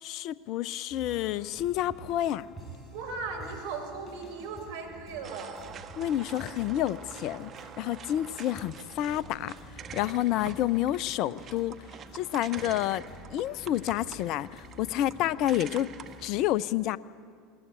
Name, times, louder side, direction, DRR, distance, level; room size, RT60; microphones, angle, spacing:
voice 1, 0.0-2.5 6.0-7.5 7.8-11.8 12.1-13.0 13.3-15.9 16.2-17.0, left 13 dB, 55° left, 18 dB, 0.7 m, -29 dB
sound 1, 0.9-16.4, right 1 dB, 15° left, 6.4 m, -49 dB
voice 2, 2.9-5.8, right 4 dB, 65° right, 3 dB, 5.4 m, -37 dB
sound 2, 5.2-16.3, right 8 dB, 40° right, 1.5 m, -46 dB
20.5 x 20.0 x 9.9 m, 2.2 s
hypercardioid pair, 80°, 0 cm